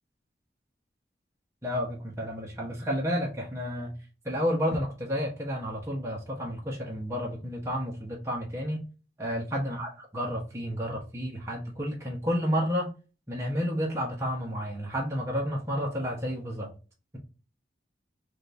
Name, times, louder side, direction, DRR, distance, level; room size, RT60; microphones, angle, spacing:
voice 1, 1.6-3.9 4.2-8.8 9.2-12.9 13.3-16.7, equal, 15° right, 1.0 m, -31 dB
5.2 x 2.6 x 2.6 m
head